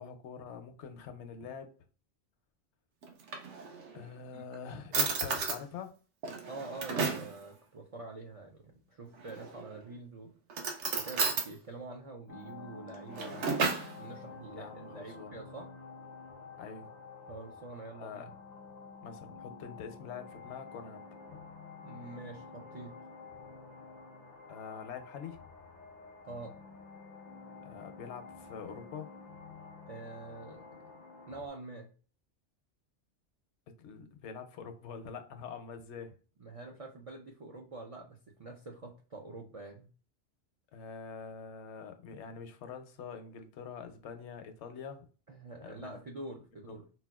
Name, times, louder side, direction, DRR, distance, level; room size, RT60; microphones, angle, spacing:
voice 1, 0.0-1.7 3.9-5.9 14.5-15.3 16.6-16.9 17.9-18.3 19.0-21.0 24.5-25.5 27.6-29.1 33.8-36.1 40.7-45.1 45.6-46.0 46.7-46.8, left 6 dB, 80° left, 0.9 m, -45 dB
Drawer open or close, 3.0-4.0 4.5-4.6 4.9-5.6 6.2-7.3 9.2-9.7 10.5-11.5 12.9-13.9, right 4 dB, 85° right, 1.0 m, -33 dB
voice 2, 6.5-10.3 10.9-13.5 14.0-15.7 17.3-18.3 21.8-22.9 26.2-26.6 29.9-30.8 31.3-31.9 36.4-39.9 45.3-46.9, right 2 dB, 60° right, 0.3 m, -46 dB
sound 1, 12.3-31.5, left 4 dB, 50° left, 0.5 m, -50 dB
4.1 x 2.2 x 2.2 m
omnidirectional pair, 1.2 m